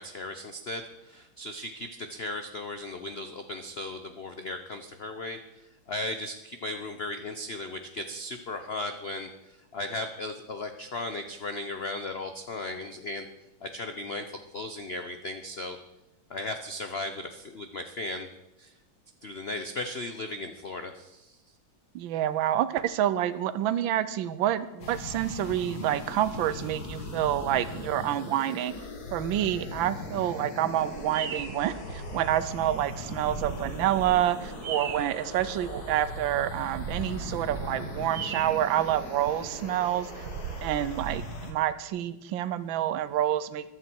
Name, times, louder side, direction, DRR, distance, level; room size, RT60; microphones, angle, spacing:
voice 1, 0.0-13.3 13.6-15.8 16.3-18.3 18.6-18.7 19.2-21.4, left 2 dB, 75° left, 7 dB, 0.5 m, -36 dB
voice 2, 21.9-28.7 29.1-40.3 40.6-43.7, right 12 dB, 80° right, 14 dB, 1.4 m, -28 dB
sound 1, 24.8-41.5, left 3 dB, 50° left, 1.9 m, -40 dB
Bird vocalization bird call bird song, 30.7-41.2, right 6 dB, 55° right, 1.4 m, -39 dB
14.5 x 11.5 x 4.5 m, 0.94 s
omnidirectional pair, 2.2 m